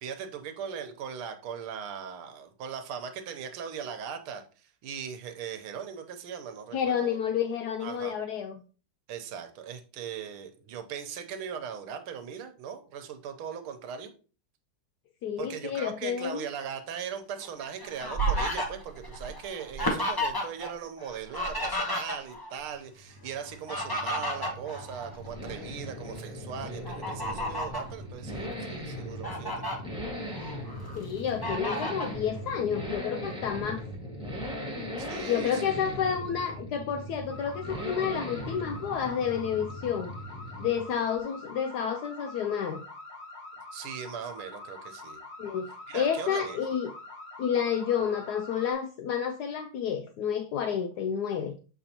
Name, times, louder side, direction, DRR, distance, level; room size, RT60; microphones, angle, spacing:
voice 1, 0.0-7.2 7.8-8.2 9.1-14.1 15.4-29.8 35.0-35.6 43.7-45.2 45.9-46.6, right 7 dB, 85° right, 7 dB, 1.7 m, -39 dB
voice 2, 6.7-8.6 15.2-16.5 31.0-33.9 35.3-40.1 40.6-42.8 45.4-45.7 45.9-46.9 47.4-51.5, left 8 dB, 80° left, 7 dB, 0.9 m, -30 dB
Fowl, 17.4-20.7 21.0-22.5 23.4-25.5 26.0-26.2 26.8-27.9 28.5-28.6 29.0-29.8 30.3-31.0 31.4-32.1, equal, 25° left, 0.5 m, -32 dB
Accelerating revving vroom, 22.8-40.9 41.2-41.3, equal, 5° right, 1.7 m, -39 dB
sound 1, 37.3-48.7, left 2 dB, 60° left, 1.7 m, -45 dB
7.0 x 5.6 x 2.8 m, 0.37 s
omnidirectional pair, 2.3 m